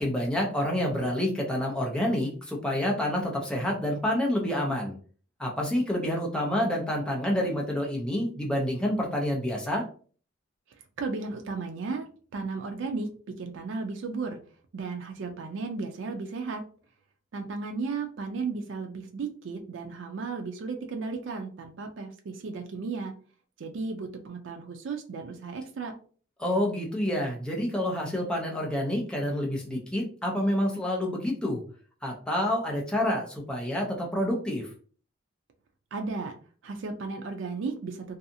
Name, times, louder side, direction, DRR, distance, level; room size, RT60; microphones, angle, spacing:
voice 1, 0.0-4.9 5.4-9.8 26.4-31.6 32.0-34.7, left 1 dB, 5° left, -1 dB, 0.6 m, -28 dB
voice 2, 11.0-12.1 12.3-13.1 13.4-14.4 14.7-16.6 17.3-23.1 23.6-25.9 35.9-36.3 36.6-38.2, right 4 dB, 80° right, 4 dB, 0.4 m, -34 dB
2.6 x 2.3 x 2.6 m, 0.42 s
head